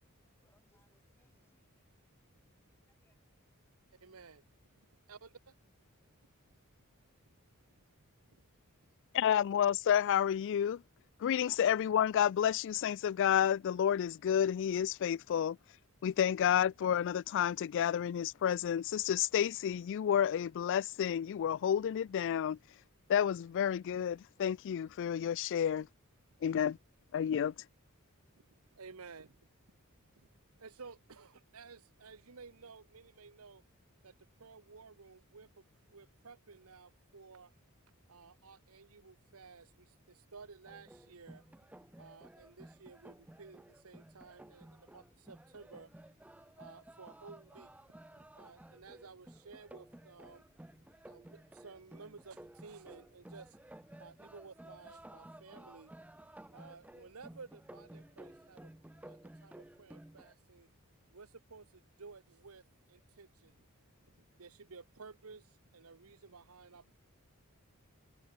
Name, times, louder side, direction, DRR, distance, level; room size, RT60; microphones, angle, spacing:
voice 1, 0.0-1.9 2.9-3.2, left 1 dB, 10° left, 4.7 m, -76 dB
voice 2, 4.0-4.4 4.8-5.5 7.8-7.9 8.3-8.4 11.5-11.6 28.4-28.5 28.7-29.4 30.1-30.3 30.6-33.6 34.0-34.1 34.4-35.6 35.9-37.5 38.1-41.4 42.0-45.9 46.6-47.7 48.3-50.4 51.0-53.6 54.0-55.9 56.5-58.7 59.0-60.7 61.1-62.6 62.9-63.6 64.0-66.9, right 4 dB, 75° right, 1.1 m, -54 dB
voice 3, 9.1-10.8 11.2-15.6 16.0-22.6 23.1-25.9 26.4-26.8 27.1-27.5, left 9 dB, 55° left, 0.3 m, -30 dB
sound 1, 40.7-60.3, right 1 dB, 5° right, 0.4 m, -55 dB
head